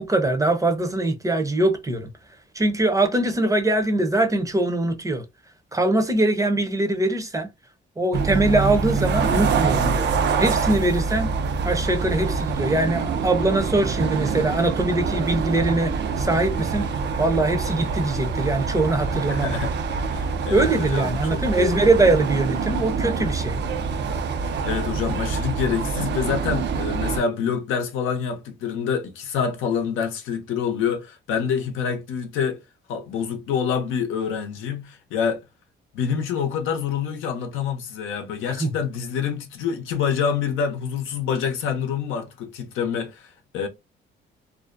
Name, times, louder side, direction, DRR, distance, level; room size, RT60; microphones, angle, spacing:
voice 1, 0.0-2.1 2.5-5.2 5.7-7.5 8.0-10.1 10.4-11.3 11.6-16.9 17.2-19.6 20.5-23.6 38.6-38.7, right 2 dB, 15° right, 0.6 m, -22 dB
sound 1, 8.1-27.2, right 5 dB, 60° right, 0.4 m, -25 dB
voice 2, 19.1-19.7 20.0-21.9 24.4-32.6 32.9-35.4 35.9-43.7, left 7 dB, 85° left, 0.6 m, -27 dB
2.5 x 2.0 x 2.4 m
cardioid pair, 90°, 20 cm